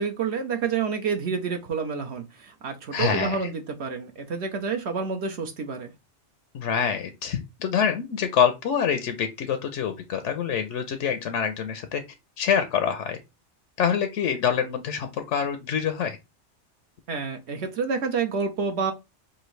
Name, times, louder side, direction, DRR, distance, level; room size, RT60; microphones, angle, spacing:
voice 1, 0.0-5.9 17.1-18.9, right 5 dB, 70° right, 1.0 m, -28 dB
voice 2, 2.9-3.5 6.5-12.0 12.4-13.2 13.8-16.2, left 7 dB, 85° left, 1.0 m, -26 dB
6.0 x 2.6 x 3.1 m
omnidirectional pair, 1.2 m